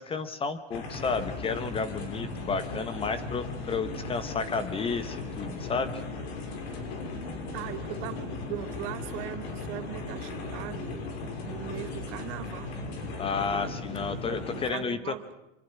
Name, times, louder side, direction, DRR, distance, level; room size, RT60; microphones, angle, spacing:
voice 1, 0.0-6.0 13.2-15.1, left 5 dB, 15° left, 13 dB, 1.1 m, -32 dB
sound 1, 0.7-14.7, left 3 dB, 60° left, 5.8 m, -37 dB
voice 2, 7.5-11.1 11.5-12.8 14.3-15.3, right 15 dB, 40° right, 12 dB, 1.5 m, -39 dB
25.0 x 24.5 x 6.0 m, 0.94 s
supercardioid pair, 145°, 34 cm